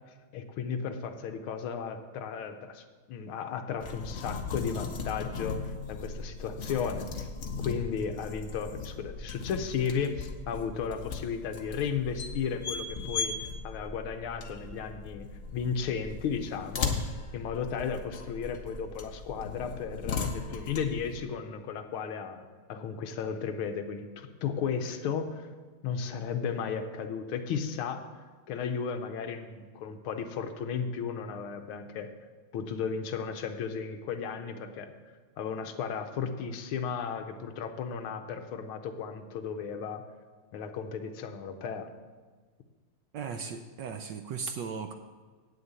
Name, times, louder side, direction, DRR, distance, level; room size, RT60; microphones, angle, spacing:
voice 1, 0.3-7.3 7.6-13.4 13.6-17.0 17.3-25.5 25.8-28.0 28.5-32.1 32.5-34.9 35.4-40.0 40.5-41.9, left 6 dB, 75° left, 7 dB, 1.6 m, -34 dB
sound 1, 3.8-21.2, left 4 dB, 50° left, 0.9 m, -38 dB
voice 2, 43.1-44.9, right 6 dB, 75° right, 7 dB, 1.1 m, -37 dB
8.9 x 6.7 x 8.2 m, 1.4 s
omnidirectional pair, 2.4 m